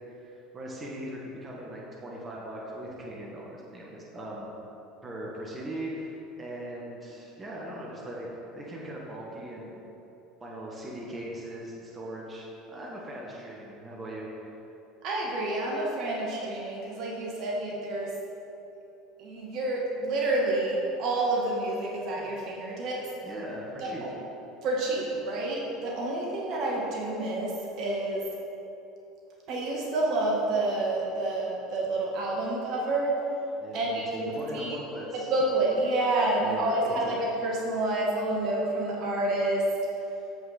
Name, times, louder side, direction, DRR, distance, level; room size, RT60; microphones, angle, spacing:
voice 1, 0.1-4.5 5.0-8.3 8.5-9.8 10.4-14.3 23.2-24.0 33.6-35.3 36.4-37.2, right 1 dB, 25° right, -4 dB, 1.6 m, -39 dB
voice 2, 15.0-18.1 19.2-23.1 23.8-23.9 24.6-28.3 29.5-33.2 33.7-34.8 35.3-39.6, right 2 dB, 50° right, -3 dB, 1.7 m, -29 dB
7.9 x 7.6 x 4.2 m, 3.0 s
figure-of-eight pair, 70°, 0 cm